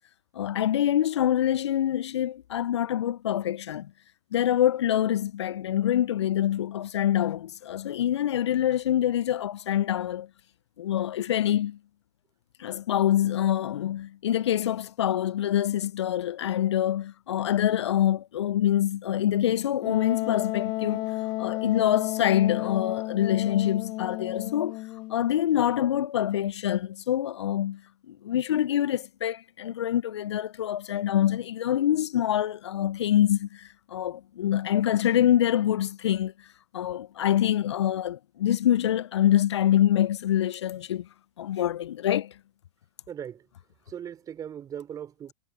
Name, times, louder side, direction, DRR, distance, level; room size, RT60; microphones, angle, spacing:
voice 1, 0.3-3.9 4.3-10.3 10.8-11.8 12.6-21.1 21.4-24.8 25.1-27.8 28.1-36.3 36.7-41.1 41.4-42.3, left 11 dB, 70° left, 0.6 m, -25 dB
Wind instrument woodwind instrument, 19.8-25.3, left 19 dB, 30° left, 0.3 m, -32 dB
voice 2, 43.1-43.5 43.9-45.3, right 9 dB, 25° right, 3.9 m, -38 dB
hypercardioid pair, 105°, 15 cm